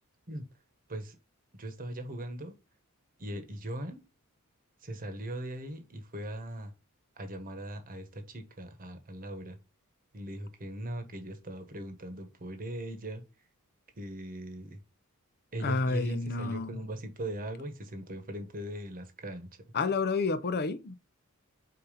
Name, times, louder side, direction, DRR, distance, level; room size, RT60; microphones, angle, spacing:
voice 1, 1.5-2.6 3.2-4.0 4.8-6.7 7.2-9.6 10.1-13.2 14.0-14.8 15.5-19.5, right 1 dB, 40° right, 1.2 m, -39 dB
voice 2, 15.6-16.7 19.7-20.9, left 4 dB, 45° left, 0.6 m, -29 dB
5.1 x 4.2 x 5.5 m
head